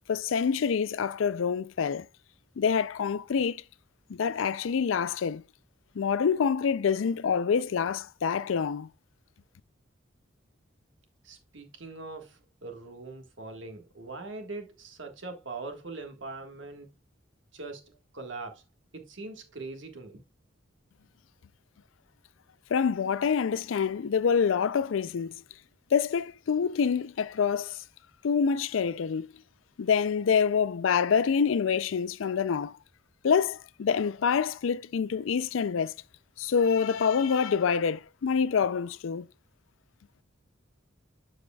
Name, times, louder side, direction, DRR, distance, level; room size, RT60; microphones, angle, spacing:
voice 1, 0.1-2.0 2.6-3.6 4.1-5.4 6.0-8.9 22.7-25.3 25.9-27.8 28.2-29.3 29.8-32.7 33.2-35.9 36.4-39.3, left 6 dB, 80° left, 0.4 m, -26 dB
voice 2, 11.2-16.9 17.5-18.6 18.9-20.2, right 3 dB, 65° right, 1.6 m, -42 dB
12.0 x 4.9 x 2.3 m
head